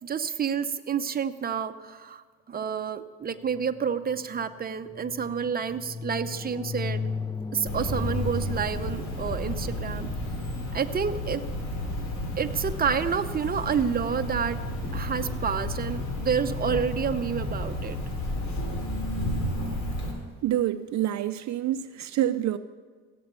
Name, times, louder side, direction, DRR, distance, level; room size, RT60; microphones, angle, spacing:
voice 1, 0.0-7.0 7.5-10.1 10.7-11.4 12.4-14.6 14.9-18.0, right 7 dB, 30° right, 0.8 m, -29 dB
sound 1, 3.4-13.4, left 4 dB, 15° left, 0.7 m, -37 dB
Cricket, 7.7-20.1, left 1 dB, 60° left, 4.0 m, -32 dB
voice 2, 20.4-22.6, right 12 dB, 65° right, 0.6 m, -27 dB
17.0 x 7.7 x 6.9 m
cardioid pair, 90°, 30 cm